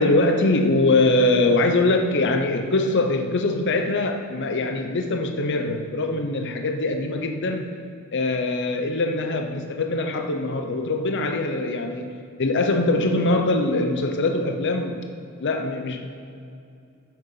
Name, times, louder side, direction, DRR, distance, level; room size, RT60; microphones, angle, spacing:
voice 1, 0.0-7.8 8.1-15.0 15.4-16.0, left 2 dB, 55° left, 4 dB, 0.7 m, -22 dB
12.0 x 7.5 x 4.8 m, 2.5 s
head